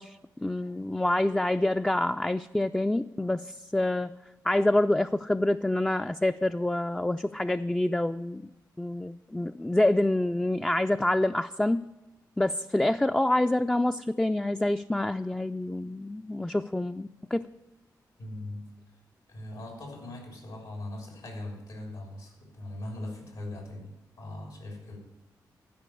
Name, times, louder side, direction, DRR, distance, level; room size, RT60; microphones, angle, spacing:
voice 1, 0.0-4.2 4.4-8.4 8.8-11.9 12.4-17.5, left 1 dB, 10° left, 8 dB, 0.3 m, -27 dB
voice 2, 18.2-18.7 19.3-25.0, left 1 dB, 85° left, 1 dB, 3.2 m, -40 dB
12.0 x 5.2 x 8.5 m, 1.0 s
supercardioid pair, 45°, 8 cm